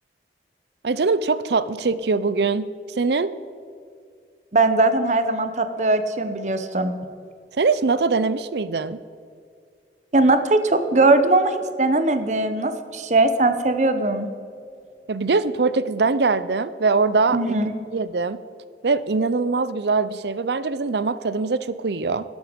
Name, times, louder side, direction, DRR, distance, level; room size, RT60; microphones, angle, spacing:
voice 1, 0.8-3.3 7.6-9.0 15.1-17.5 17.9-18.4 18.8-22.2, right 4 dB, 70° right, 15 dB, 0.6 m, -22 dB
voice 2, 4.5-6.9 10.1-14.3 17.3-17.7, right 2 dB, 40° right, 9 dB, 0.9 m, -20 dB
12.5 x 11.5 x 5.2 m, 2.3 s
head